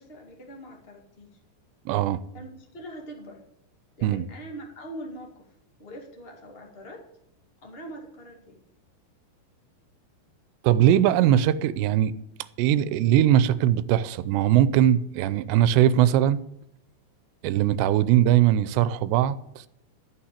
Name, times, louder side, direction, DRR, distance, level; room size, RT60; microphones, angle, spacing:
voice 1, 0.0-1.4 2.3-3.4 4.0-5.5 5.8-7.0 7.6-8.6, right 1 dB, 75° left, 0.5 m, -42 dB
voice 2, 1.9-2.2 4.0-4.3 10.6-12.1 12.6-16.4 17.4-19.4, right 11 dB, 85° right, 2.7 m, -20 dB
13.5 x 5.8 x 9.6 m
omnidirectional pair, 5.0 m